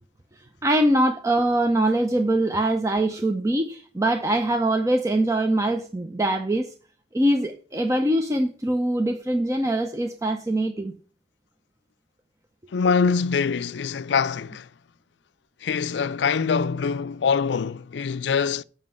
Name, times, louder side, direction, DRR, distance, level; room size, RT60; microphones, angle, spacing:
voice 1, 0.6-6.7 7.1-10.9, right 1 dB, 15° right, 0.6 m, -23 dB
voice 2, 12.7-14.7 15.6-18.6, left 5 dB, 75° left, 0.4 m, -24 dB
7.5 x 6.1 x 7.7 m
head